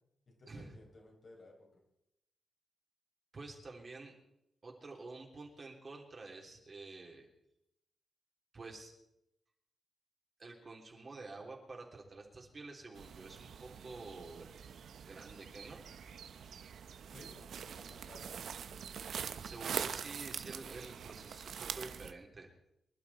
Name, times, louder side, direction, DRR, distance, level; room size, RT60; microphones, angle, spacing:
voice 1, 0.3-1.5 17.1-18.8, left 2 dB, 50° left, -1 dB, 5.3 m, -57 dB
voice 2, 3.3-4.1 4.6-7.3 8.5-8.9 10.4-14.5 15.0-15.8 19.4-22.5, right 3 dB, 35° right, 0 dB, 3.3 m, -49 dB
sound 1, 12.9-22.1, right 7 dB, 85° right, 0.9 m, -44 dB
24.5 x 12.0 x 4.2 m, 0.82 s
wide cardioid pair, 125°, 0 cm